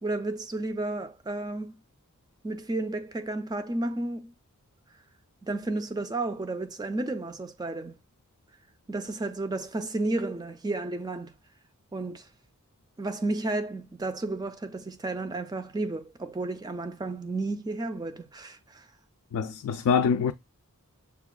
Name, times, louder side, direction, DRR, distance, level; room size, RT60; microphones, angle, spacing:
voice 1, 0.0-1.7 2.4-4.3 5.4-8.0 8.9-11.3 11.9-12.3 13.0-18.9, right 2 dB, 20° right, 0.3 m, -32 dB
voice 2, 19.3-20.3, left 6 dB, 85° left, 0.3 m, -24 dB
6.7 x 2.3 x 2.2 m
head